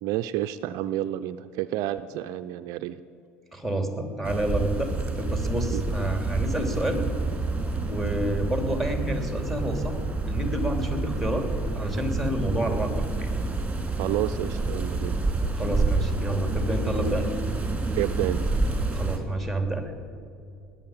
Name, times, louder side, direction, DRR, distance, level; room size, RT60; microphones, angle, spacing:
voice 1, 0.0-3.0 5.7-5.8 14.0-15.2 18.0-18.5, right 13 dB, 60° right, 11 dB, 0.5 m, -30 dB
voice 2, 3.5-4.9 5.2-7.0 7.9-10.0 10.3-11.5 11.7-13.3 15.5-17.3 18.9-19.9, right 1 dB, ahead, 5 dB, 2.7 m, -29 dB
sound 1, 4.2-19.2, right 3 dB, 15° right, 2.7 m, -28 dB
20.0 x 7.4 x 8.9 m, 2.6 s
hypercardioid pair, 70°, 7 cm